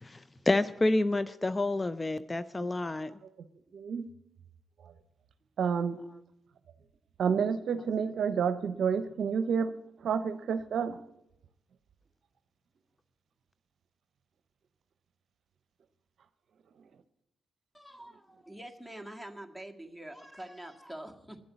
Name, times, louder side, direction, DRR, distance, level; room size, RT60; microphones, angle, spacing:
voice 1, 0.0-3.1, left 2 dB, 25° left, 14 dB, 0.5 m, -29 dB
voice 2, 3.7-4.1 5.6-6.0 7.2-9.7 10.0-11.0, right 6 dB, 70° right, 13 dB, 0.7 m, -29 dB
voice 3, 17.7-21.4, right 1 dB, 5° left, 6 dB, 1.9 m, -45 dB
11.0 x 7.7 x 9.5 m, 0.84 s
hypercardioid pair, 45°, 0 cm